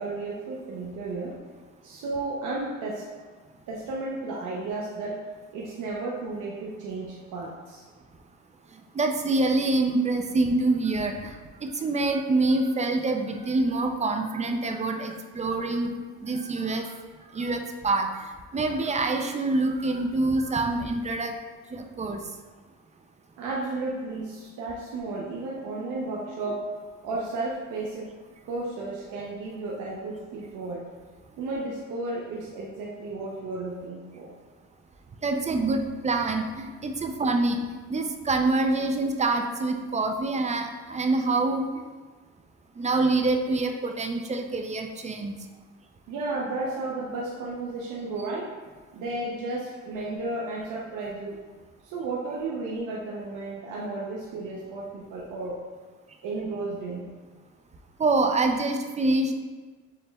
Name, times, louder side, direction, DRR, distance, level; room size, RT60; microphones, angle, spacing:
voice 1, 0.0-1.3 1.8-3.1 3.7-5.2 5.5-7.8 23.4-26.7 27.0-28.1 28.4-30.9 31.4-34.3 46.1-48.5 48.9-51.4 51.8-55.6 56.2-57.1, right 2 dB, 85° right, -4 dB, 0.7 m, -33 dB
voice 2, 8.9-11.3 11.6-16.9 17.3-18.3 18.5-21.4 21.7-22.2 35.2-37.6 37.9-41.8 42.8-45.3 58.0-59.3, right 2 dB, 25° right, 4 dB, 0.4 m, -26 dB
6.7 x 3.1 x 2.3 m, 1.4 s
cardioid pair, 90°, 30 cm